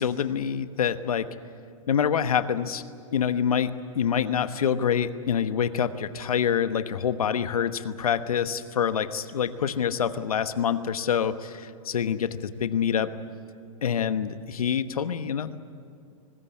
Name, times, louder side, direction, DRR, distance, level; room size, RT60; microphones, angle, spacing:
voice 1, 0.0-1.3 1.9-2.8 3.1-13.1 13.8-15.6, left 8 dB, 85° left, 11 dB, 1.2 m, -26 dB
24.5 x 20.0 x 8.5 m, 2.5 s
hypercardioid pair, 125°, 18 cm